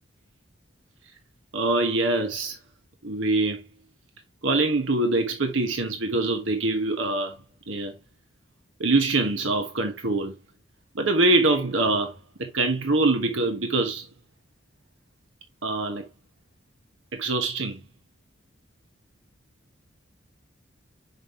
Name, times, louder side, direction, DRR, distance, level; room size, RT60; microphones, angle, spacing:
voice 1, 1.5-2.6 3.0-3.6 4.4-7.4 7.7-7.9 8.8-10.3 10.9-12.1 12.4-14.1 15.6-16.0 17.1-17.8, right 2 dB, 75° right, 1.3 m, -24 dB
6.3 x 5.4 x 3.1 m
head